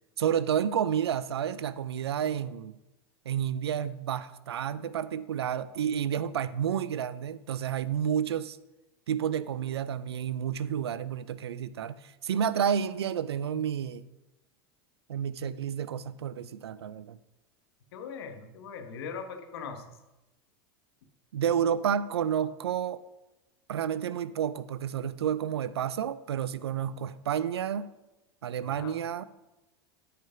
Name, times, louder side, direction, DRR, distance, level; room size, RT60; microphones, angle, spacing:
voice 1, 0.2-2.8 3.3-8.6 9.1-14.1 15.1-17.2 21.3-23.0 23.7-27.9 28.4-29.2, right 9 dB, 85° right, 15 dB, 0.5 m, -30 dB
voice 2, 17.9-19.8 28.6-29.0, left 6 dB, 75° left, 6 dB, 1.2 m, -40 dB
8.9 x 5.1 x 5.7 m, 0.97 s
hypercardioid pair, 95°, 13 cm